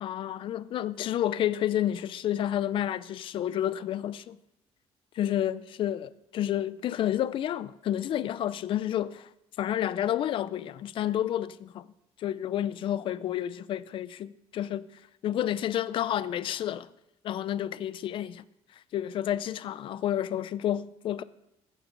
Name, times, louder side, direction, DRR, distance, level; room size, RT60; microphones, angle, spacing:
voice 1, 0.0-4.4 5.2-9.3 9.6-11.9 12.2-14.9 15.2-16.9 17.2-18.4 18.9-21.2, left 11 dB, 50° left, 0.5 m, -30 dB
21.5 x 9.2 x 3.9 m
cardioid pair, 170°, 11 cm